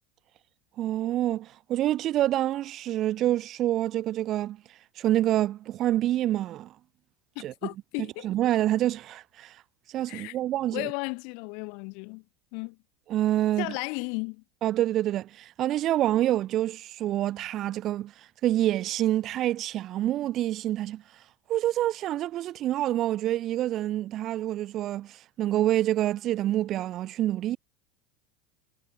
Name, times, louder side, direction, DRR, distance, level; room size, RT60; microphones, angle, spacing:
voice 1, 0.8-4.6 5.0-6.7 7.4-7.5 8.2-9.6 9.9-10.9 13.1-13.7 14.6-18.1 18.4-21.0 21.5-27.6, right 13 dB, 45° right, 0.4 m, -27 dB
voice 2, 7.3-8.3 10.1-10.4 10.7-12.2 12.5-12.8 13.6-14.4, left 36 dB, 60° left, 1.7 m, -34 dB
hypercardioid pair, 85°, 0 cm